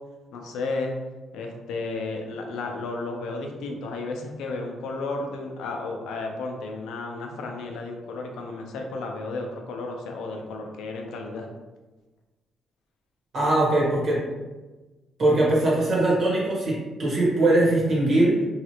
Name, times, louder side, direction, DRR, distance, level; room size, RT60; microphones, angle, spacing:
voice 1, 0.3-0.9 1.3-11.5, left 3 dB, 85° left, 2 dB, 0.5 m, -33 dB
voice 2, 13.3-14.2 15.2-18.3, right 1 dB, 50° right, -4 dB, 1.3 m, -21 dB
3.0 x 2.4 x 2.9 m, 1.2 s
cardioid pair, 90°, 0 cm